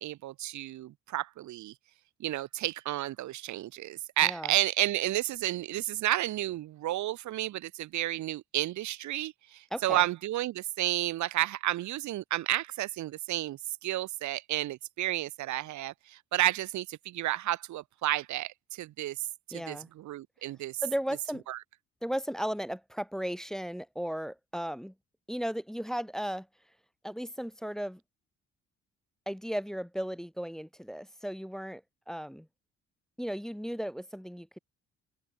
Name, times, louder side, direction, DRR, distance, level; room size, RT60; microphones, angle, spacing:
voice 1, 0.0-1.7 2.2-20.8 21.5-21.6, right 15 dB, 70° right, 0.8 m, -31 dB
voice 2, 4.2-4.5 9.7-10.0 19.5-19.9 20.8-21.4 22.0-24.9 25.3-26.5 27.0-28.0 29.3-32.5 33.2-34.6, equal, ahead, 0.5 m, -35 dB
cardioid pair, 90°, 30 cm